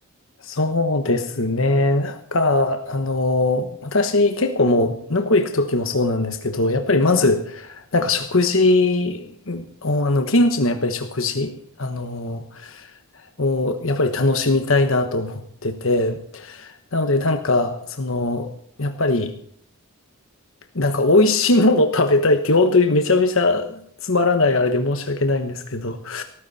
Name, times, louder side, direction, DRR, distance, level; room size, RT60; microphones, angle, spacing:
voice 1, 0.4-11.5 11.8-12.7 13.4-18.5 18.8-19.3 20.7-26.2, left 2 dB, 65° left, 6 dB, 1.2 m, -20 dB
18.0 x 14.5 x 4.3 m, 0.66 s
head